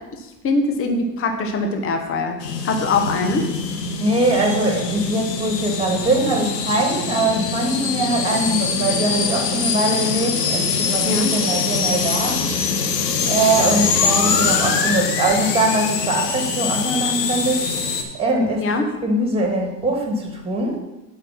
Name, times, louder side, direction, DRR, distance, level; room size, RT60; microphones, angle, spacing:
voice 1, 0.4-2.4 2.6-3.5 11.0-11.3 18.6-18.8, left 3 dB, 25° left, 4 dB, 1.2 m, -22 dB
sound 1, 2.4-18.0, left 5 dB, 85° left, 1.1 m, -23 dB
voice 2, 4.0-12.5 13.2-20.8, right 2 dB, 10° right, 1 dB, 2.1 m, -22 dB
7.5 x 4.9 x 5.9 m, 1.0 s
hypercardioid pair, 95°, 48 cm